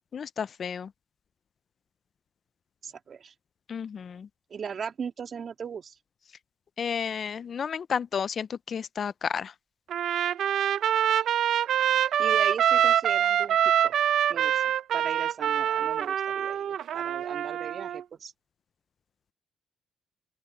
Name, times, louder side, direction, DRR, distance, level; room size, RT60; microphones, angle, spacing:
voice 1, 0.1-0.9 3.7-4.3 6.8-9.5, left 7 dB, 50° left, 0.5 m, -32 dB
voice 2, 2.8-3.3 4.5-5.9 12.2-14.0 14.3-18.3, right 6 dB, 50° right, 2.9 m, -38 dB
Trumpet, 9.9-18.0, right 10 dB, 70° right, 0.7 m, -25 dB
open air
cardioid pair, 90°, 0 cm